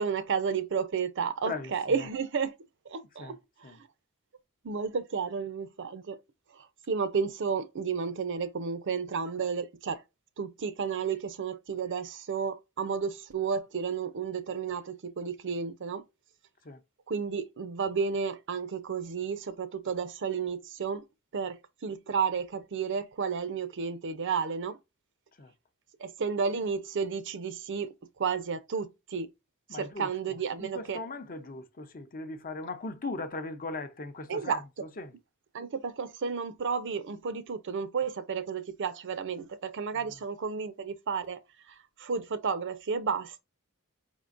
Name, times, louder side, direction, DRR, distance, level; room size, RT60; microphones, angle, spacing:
voice 1, 0.0-2.6 2.9-3.9 4.6-6.2 6.5-10.0 10.4-16.0 17.1-21.0 21.3-24.8 26.0-27.9 28.2-29.3 29.7-31.0 34.3-34.6 35.5-41.4 41.7-43.4, right 6 dB, 60° right, 0.6 m, -32 dB
voice 2, 29.7-30.1 30.6-34.6 35.0-35.1, left 3 dB, 40° left, 0.7 m, -38 dB
5.1 x 3.7 x 2.5 m
head